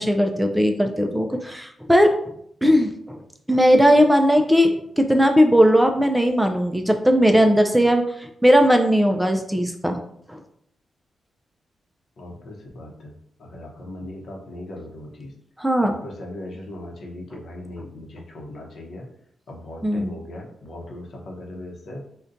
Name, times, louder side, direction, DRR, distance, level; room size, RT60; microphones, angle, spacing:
voice 1, 0.0-2.2 2.6-3.2 3.5-10.0 10.3-10.4 15.6-15.9 19.8-20.1, equal, 5° right, 4 dB, 0.3 m, -18 dB
voice 2, 12.2-13.1 13.4-15.3 15.8-19.1 19.5-22.0, left 1 dB, 65° left, 0 dB, 0.7 m, -38 dB
2.6 x 2.2 x 3.8 m, 0.71 s
cardioid pair, 90°, 0 cm